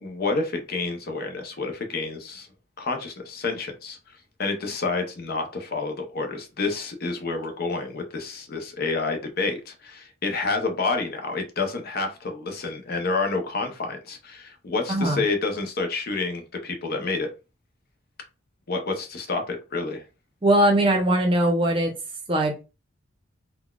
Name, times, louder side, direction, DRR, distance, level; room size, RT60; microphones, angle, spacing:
voice 1, 0.0-2.5 2.8-4.0 4.4-17.3 18.7-20.0, left 3 dB, 50° left, 0.6 m, -29 dB
voice 2, 14.9-15.2 20.4-21.9 22.3-22.6, right 1 dB, 25° right, 0.7 m, -20 dB
3.9 x 2.2 x 2.3 m
head